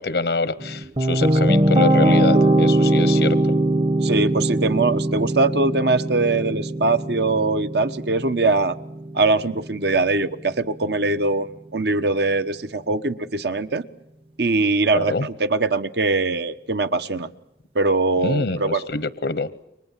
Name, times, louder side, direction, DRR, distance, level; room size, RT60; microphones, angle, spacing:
voice 1, 0.0-3.6 14.9-15.3 18.2-19.5, left 3 dB, 80° left, 14 dB, 1.0 m, -25 dB
sound 1, 0.6-9.7, right 1 dB, 30° right, 1.0 m, -21 dB
voice 2, 4.0-8.8 9.1-13.8 14.4-17.3 17.7-18.9, right 3 dB, 70° right, 9 dB, 1.3 m, -22 dB
29.0 x 24.0 x 7.5 m, 0.80 s
head